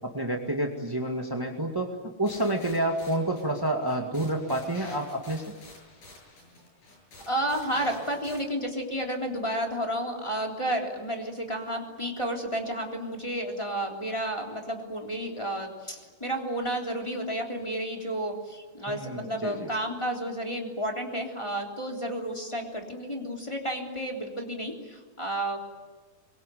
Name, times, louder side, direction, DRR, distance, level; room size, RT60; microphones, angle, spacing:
voice 1, 0.0-5.4 18.8-19.7, right 1 dB, 10° right, 2 dB, 1.0 m, -29 dB
sound 1, 2.3-8.4, left 2 dB, 60° left, 8.8 m, -49 dB
voice 2, 7.3-25.6, right 1 dB, 10° left, 1 dB, 3.1 m, -31 dB
24.0 x 23.5 x 9.4 m, 1.3 s
omnidirectional pair, 4.2 m